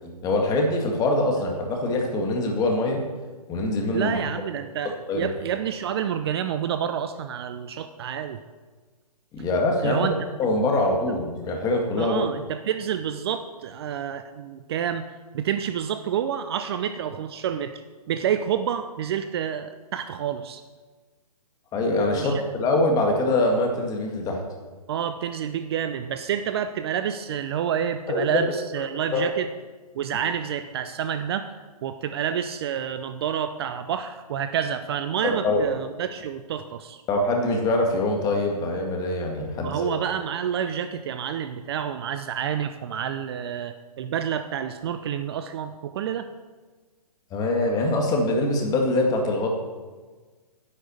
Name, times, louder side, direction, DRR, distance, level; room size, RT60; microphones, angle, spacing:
voice 1, 0.0-3.0 3.5-4.2 5.1-5.3 9.3-10.1 10.4-12.3 21.7-24.4 28.1-28.4 29.1-29.2 35.2-35.6 37.1-39.9 47.3-49.5, left 2 dB, 20° left, 1 dB, 2.0 m, -24 dB
voice 2, 3.9-8.4 9.8-10.1 12.0-17.7 18.1-20.6 22.1-22.3 24.9-29.5 29.9-31.5 31.8-37.0 39.6-46.3, right 9 dB, 40° right, 9 dB, 0.6 m, -28 dB
10.5 x 6.2 x 8.3 m, 1.4 s
hypercardioid pair, 140°, 20 cm